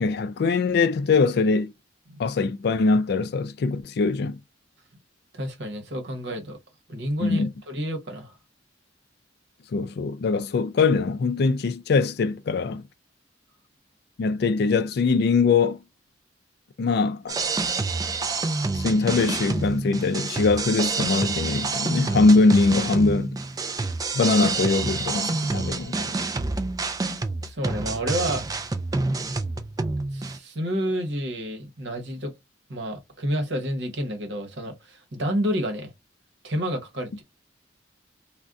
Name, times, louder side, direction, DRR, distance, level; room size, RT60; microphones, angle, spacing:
voice 1, 0.0-1.7 2.2-4.4 7.2-7.5 9.7-12.8 14.2-15.8 16.8-17.4 18.7-23.4 24.1-26.2, left 4 dB, 55° left, 0.3 m, -22 dB
voice 2, 5.3-6.6 6.9-8.4 27.4-28.7 30.1-32.3 32.7-35.9 36.4-37.2, equal, 65° right, 1.0 m, -30 dB
sound 1, 17.3-30.4, right 3 dB, 20° right, 0.3 m, -28 dB
2.5 x 2.1 x 3.5 m
head